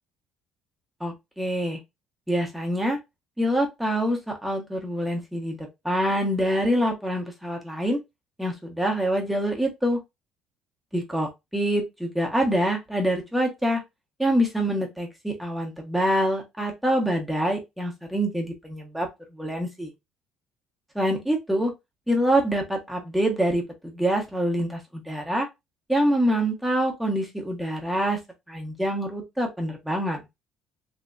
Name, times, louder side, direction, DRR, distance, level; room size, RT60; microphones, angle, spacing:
voice 1, 1.0-1.8 2.3-3.0 3.4-5.6 5.8-8.0 8.4-10.0 10.9-13.8 14.2-19.1 19.3-19.9 20.9-21.7 22.1-25.5 25.9-28.2 28.5-30.2, equal, 5° right, 1.1 m, -25 dB
3.3 x 2.9 x 2.5 m
cardioid pair, 145°, 0 cm